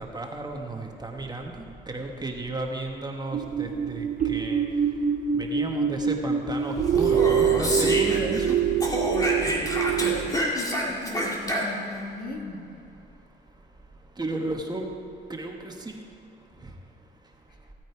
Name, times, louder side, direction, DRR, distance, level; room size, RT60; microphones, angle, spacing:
voice 1, 0.0-1.5 1.9-4.6 5.3-8.6 14.2-14.9 15.3-15.9 16.6-16.7, right 2 dB, 20° right, 2 dB, 1.3 m, -33 dB
sound 1, 3.3-10.4, right 7 dB, 40° right, 0.6 m, -25 dB
Speech, 6.9-8.5 8.8-12.0, equal, 20° left, 2.3 m, -28 dB
voice 2, 10.3-12.7, left 2 dB, 50° left, 1 dB, 1.8 m, -37 dB
16.0 x 9.1 x 4.6 m, 2.6 s
cardioid pair, 90°, 20 cm